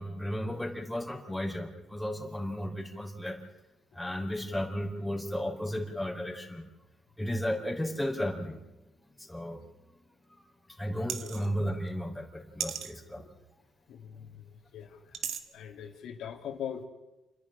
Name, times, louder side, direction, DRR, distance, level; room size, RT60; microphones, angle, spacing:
voice 1, 0.0-3.4 3.9-6.6 7.2-8.6 9.2-9.6 10.7-13.2, equal, 5° left, 2 dB, 4.1 m, -34 dB
sound 1, 11.1-11.5 12.6-12.9 15.1-15.4, right 8 dB, 70° right, 1.7 m, -35 dB
voice 2, 13.9-15.2 15.5-16.8, left 8 dB, 80° left, 4 dB, 2.4 m, -42 dB
28.5 x 11.0 x 10.0 m, 1.0 s
cardioid pair, 90°, 0 cm